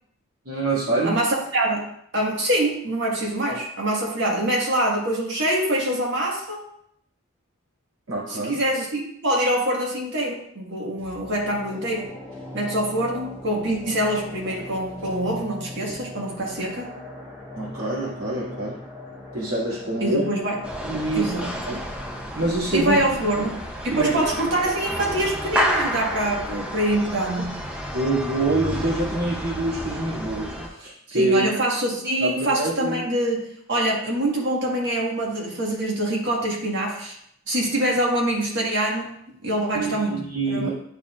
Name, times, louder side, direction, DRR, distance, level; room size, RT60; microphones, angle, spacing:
voice 1, 0.4-1.2 8.1-8.6 17.5-18.8 19.3-20.3 20.8-21.8 22.3-23.0 23.3-23.4 23.9-24.2 27.9-31.4 32.2-33.0 39.7-40.7, right 2 dB, 85° right, -7 dB, 2.3 m, -26 dB
voice 2, 1.0-1.8 2.1-6.6 8.3-12.1 12.5-16.9 20.0-20.6 21.1-21.5 22.7-27.6 31.1-37.1 37.5-39.1 39.4-40.2 40.5-40.7, right 1 dB, 55° right, -2 dB, 1.6 m, -25 dB
sound 1, 11.0-24.1 24.4-24.5, left 1 dB, 20° right, 1.5 m, -41 dB
sound 2, 20.6-30.7, equal, 5° right, 0.6 m, -30 dB
10.5 x 4.2 x 2.4 m, 0.71 s
head